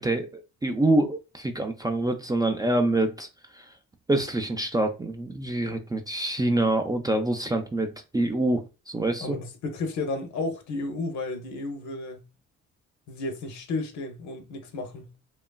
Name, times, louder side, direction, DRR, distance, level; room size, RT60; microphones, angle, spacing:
voice 1, 0.0-3.3 3.5-3.7 4.1-9.4, right 2 dB, 15° right, 0.4 m, -26 dB
voice 2, 9.2-12.3 13.1-15.1, left 3 dB, 70° left, 0.8 m, -33 dB
2.9 x 2.3 x 2.2 m
cardioid pair, 90°, 30 cm